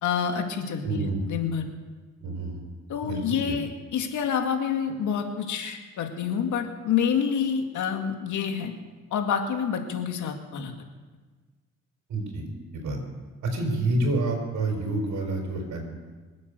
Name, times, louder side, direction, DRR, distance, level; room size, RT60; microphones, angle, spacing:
voice 1, 0.0-1.7 2.9-8.7 9.1-10.7, left 7 dB, 80° left, 4 dB, 2.1 m, -28 dB
voice 2, 0.8-1.2 2.2-2.6 3.0-3.2 3.5-3.6 12.1-12.4 12.8-13.0 13.5-15.9, right 2 dB, 70° right, 2 dB, 4.9 m, -28 dB
25.0 x 8.5 x 6.7 m, 1.4 s
cardioid pair, 90°, 30 cm